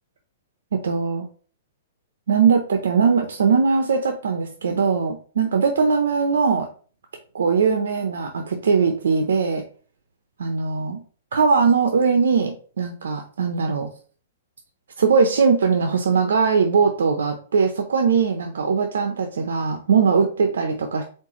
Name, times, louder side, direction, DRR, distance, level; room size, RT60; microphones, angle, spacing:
voice 1, 0.7-1.3 2.3-6.7 7.3-9.6 10.4-11.0 11.3-13.9 15.0-21.0, right 5 dB, 85° right, 5 dB, 0.7 m, -20 dB
4.4 x 3.9 x 3.0 m, 0.41 s
hypercardioid pair, 155°, 0 cm